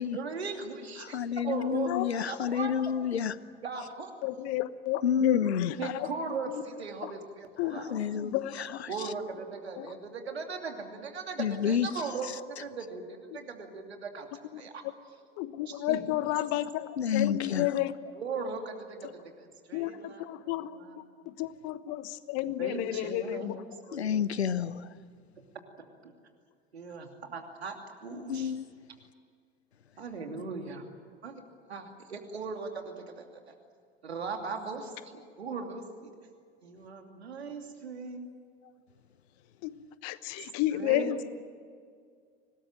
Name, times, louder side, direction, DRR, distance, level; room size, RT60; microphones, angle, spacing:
voice 1, 0.0-2.7 3.6-4.1 5.8-8.0 8.9-14.8 15.7-16.1 18.1-21.3 22.6-23.6 23.9-24.3 26.0-26.1 26.7-28.5 30.0-30.9 31.2-31.3 31.7-33.4 34.0-36.1 36.6-38.3 40.4-41.3, right 4 dB, 85° right, 2.9 m, -39 dB
voice 2, 1.0-3.3 5.0-5.7 7.7-8.9 11.4-11.9 17.0-17.8 23.9-24.9 28.3-28.7, left 8 dB, 85° left, 0.8 m, -29 dB
voice 3, 4.2-6.1 7.6-8.8 9.8-9.9 14.5-14.6 15.4-18.1 19.7-19.9 20.2-23.6 39.6-39.7 40.0-41.1, left 14 dB, 55° left, 1.2 m, -32 dB
25.0 x 19.5 x 8.9 m
figure-of-eight pair, 75°, 31 cm